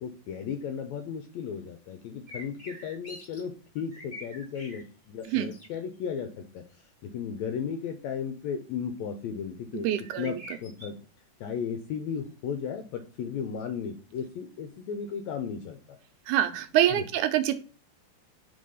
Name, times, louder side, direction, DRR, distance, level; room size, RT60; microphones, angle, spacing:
voice 1, 0.0-6.6 7.0-9.9 10.2-11.0 11.4-15.8 16.9-17.0, left 7 dB, 80° left, 7 dB, 1.6 m, -35 dB
sound 1, 2.3-3.4 3.8-4.8 5.2-5.7 10.0-10.9, equal, 45° left, 0.6 m, -45 dB
voice 2, 9.8-10.4 16.3-17.6, right 11 dB, 80° right, 8 dB, 1.9 m, -25 dB
5.2 x 3.3 x 5.4 m, 0.39 s
omnidirectional pair, 3.7 m